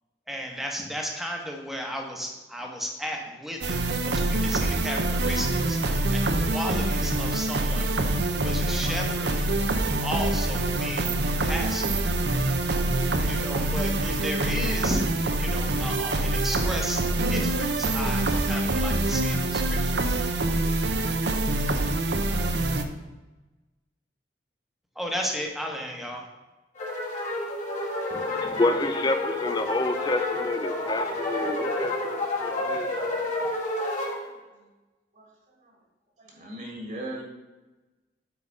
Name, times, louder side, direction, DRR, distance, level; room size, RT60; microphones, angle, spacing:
voice 1, 0.3-7.9 8.3-9.5 10.0-12.0 13.3-15.0 15.4-17.0 17.3-19.8 24.9-26.3, equal, ahead, 1 dB, 1.1 m, -34 dB
sound 1, 3.6-22.8, right 2 dB, 75° right, 0.7 m, -25 dB
sound 2, 26.8-34.2, left 2 dB, 45° left, 1.7 m, -29 dB
voice 2, 28.1-32.9, left 2 dB, 25° left, 8 dB, 0.4 m, -29 dB
voice 3, 34.0-34.3 35.1-35.3 35.6-35.7 36.2-37.2, right 1 dB, 45° right, 1 dB, 1.6 m, -39 dB
8.4 x 4.0 x 5.3 m, 1.1 s
head